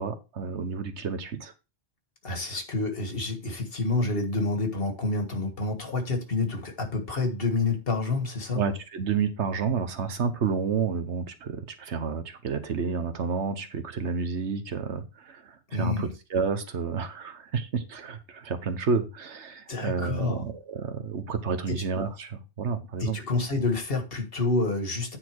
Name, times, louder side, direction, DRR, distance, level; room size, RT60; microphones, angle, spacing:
voice 1, 0.0-1.5 2.5-2.6 8.5-23.2, right 5 dB, 80° right, 1.3 m, -30 dB
voice 2, 2.2-8.6 15.7-16.1 19.7-20.4 21.7-21.8 23.0-25.2, left 3 dB, 55° left, 1.9 m, -28 dB
9.5 x 4.2 x 4.6 m
omnidirectional pair, 1.1 m